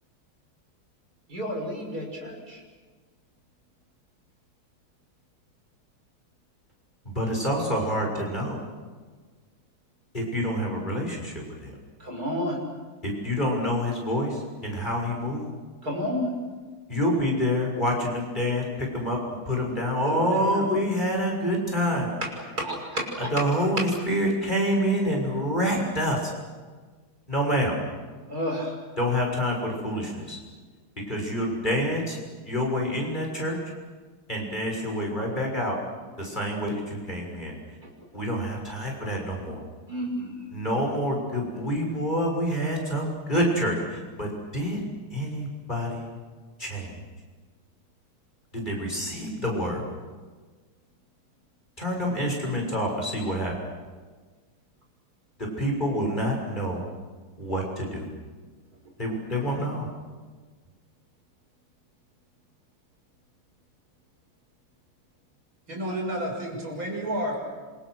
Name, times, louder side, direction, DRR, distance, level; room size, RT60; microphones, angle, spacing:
voice 1, 1.3-2.6 12.0-12.6 15.8-16.3 19.8-20.7 21.8-21.9 22.2-22.3 22.6-23.4 23.8-23.9 28.3-28.8 37.8-37.9 39.9-40.5, equal, 45° right, 1 dB, 6.5 m, -31 dB
voice 2, 7.0-8.6 10.1-11.7 13.0-15.5 16.9-19.2 19.4-22.1 23.3-26.3 27.3-27.8 29.0-30.4 31.1-32.2 32.4-33.6 34.3-35.8 36.2-37.5 38.1-39.6 40.5-44.8 45.1-46.1 46.6-47.0 48.5-49.8 51.8-53.5 55.6-56.8 57.4-58.1 59.0-59.9, equal, 20° left, 0 dB, 6.6 m, -27 dB
voice 3, 65.7-67.5, right 1 dB, 70° right, 1 dB, 7.3 m, -30 dB
27.5 x 26.5 x 6.5 m, 1.4 s
omnidirectional pair, 2.3 m